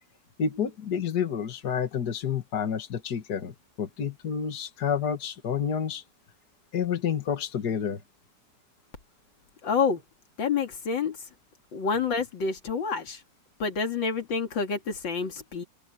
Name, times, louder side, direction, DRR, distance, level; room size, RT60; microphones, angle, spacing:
voice 1, 0.4-6.0 6.7-8.0, left 7 dB, 60° left, 2.2 m, -29 dB
voice 2, 9.6-10.0 10.4-11.2 11.7-13.2 13.6-15.6, left 5 dB, 80° left, 2.9 m, -28 dB
open air
omnidirectional pair, 2.0 m